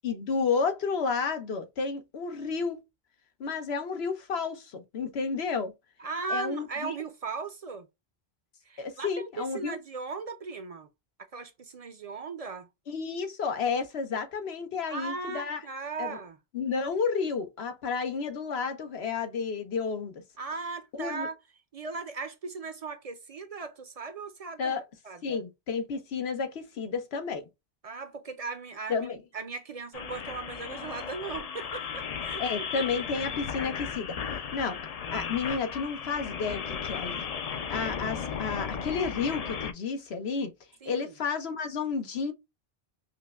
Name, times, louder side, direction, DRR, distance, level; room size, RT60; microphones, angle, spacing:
voice 1, 0.0-2.8 3.4-5.7 6.3-6.9 8.8-9.8 12.9-15.6 16.0-16.2 16.5-20.1 20.9-21.3 24.6-24.8 25.2-27.4 28.9-29.2 32.4-34.2 34.5-34.8 35.1-37.3 37.7-40.5 40.9-42.3, left 5 dB, 90° left, 1.1 m, -31 dB
voice 2, 6.0-7.9 8.6-10.9 11.3-12.7 14.9-16.4 20.4-21.4 21.7-24.8 25.0-25.4 27.8-29.1 29.3-32.4 40.8-41.2, right 4 dB, 45° right, 0.5 m, -37 dB
sound 1, 29.9-39.7, left 6 dB, 50° left, 0.5 m, -35 dB
5.4 x 2.1 x 2.3 m
omnidirectional pair, 1.0 m